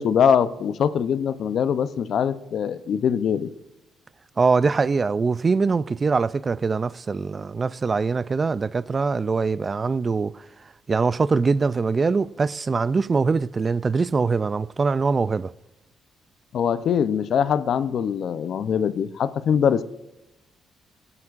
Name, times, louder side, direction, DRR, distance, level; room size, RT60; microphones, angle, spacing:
voice 1, 0.0-3.5 16.5-19.8, left 8 dB, 65° left, 0.6 m, -22 dB
voice 2, 4.4-10.3 10.9-15.5, right 4 dB, 35° right, 0.3 m, -23 dB
17.5 x 9.8 x 2.5 m
cardioid pair, 90°, 0 cm